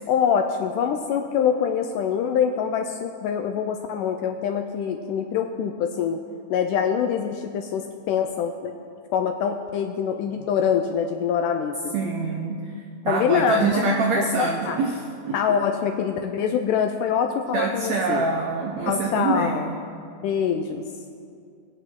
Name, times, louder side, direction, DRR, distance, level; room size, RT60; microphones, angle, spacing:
voice 1, 0.1-6.2 6.5-8.7 9.1-11.9 13.1-13.9 14.1-14.8 15.3-18.3 18.9-19.7 20.2-20.8, left 7 dB, 80° left, 5 dB, 1.9 m, -24 dB
voice 2, 11.9-12.7 13.0-15.0 15.3-15.4 17.5-19.8, right 3 dB, 85° right, 1 dB, 1.5 m, -25 dB
23.0 x 8.2 x 3.7 m, 2.3 s
omnidirectional pair, 4.2 m